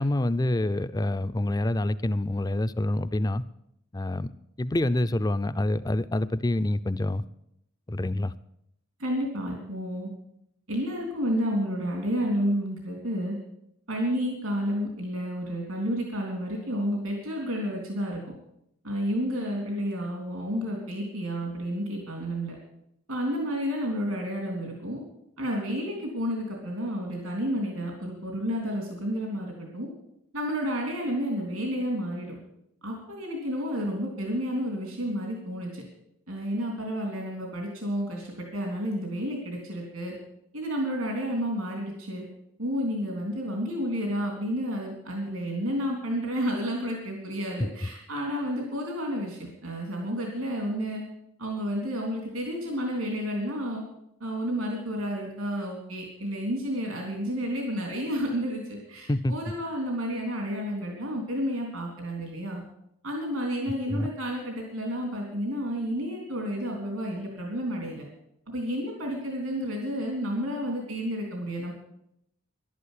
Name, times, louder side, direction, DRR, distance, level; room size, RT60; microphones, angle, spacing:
voice 1, 0.0-3.4 3.9-4.3 4.6-7.2 7.9-8.3 59.1-59.3 63.9-64.1, left 1 dB, 20° left, 14 dB, 0.4 m, -26 dB
voice 2, 9.0-10.1 10.7-13.4 13.9-18.2 18.8-22.6 23.1-25.0 25.4-29.9 30.3-32.4 32.8-35.8 36.3-40.1 40.5-42.3 42.6-51.0 51.4-53.8 54.2-62.6 63.0-68.1 68.5-71.7, equal, 85° right, 0 dB, 3.5 m, -31 dB
11.5 x 11.0 x 8.3 m, 0.79 s
head